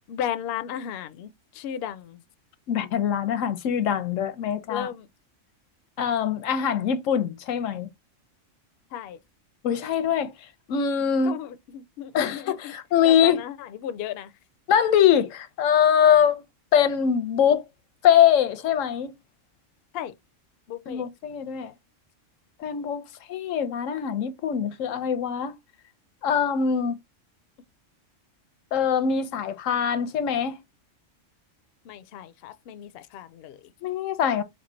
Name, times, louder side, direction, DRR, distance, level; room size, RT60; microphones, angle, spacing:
voice 1, 0.1-2.2 4.7-5.1 8.9-9.2 11.2-12.8 13.0-14.3 19.9-20.1 20.7-21.1 31.8-33.7, left 9 dB, 65° left, 0.6 m, -35 dB
voice 2, 2.7-4.9 6.0-7.9 9.6-10.3 10.7-11.4 12.1-13.4 14.7-16.4 16.7-17.6 18.0-19.1 20.9-21.7 22.6-23.0 23.3-25.5 26.2-27.0 28.7-30.6 33.8-34.4, left 8 dB, 85° left, 1.0 m, -23 dB
4.4 x 2.3 x 4.3 m
omnidirectional pair, 1.3 m